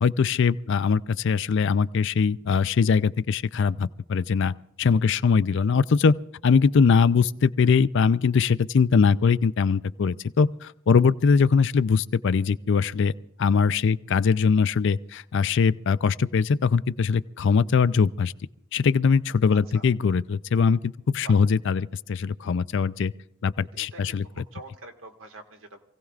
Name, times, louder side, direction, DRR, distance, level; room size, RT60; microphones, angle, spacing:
voice 1, 0.0-6.1 6.4-13.1 13.4-18.3 18.7-23.1 23.4-24.2, left 5 dB, 65° left, 0.4 m, -22 dB
voice 2, 19.5-19.9 21.2-21.4 23.7-25.8, right 2 dB, 85° right, 1.8 m, -45 dB
27.0 x 16.5 x 2.4 m
head